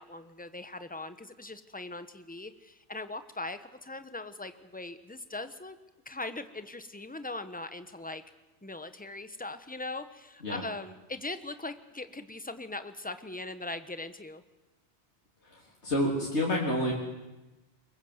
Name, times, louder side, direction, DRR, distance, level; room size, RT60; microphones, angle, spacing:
voice 1, 0.0-5.8 6.0-8.2 8.6-14.4, left 2 dB, 10° left, 10 dB, 1.0 m, -40 dB
voice 2, 15.4-16.9, left 1 dB, 70° left, -4 dB, 3.8 m, -29 dB
23.5 x 21.0 x 8.0 m, 1.1 s
omnidirectional pair, 1.2 m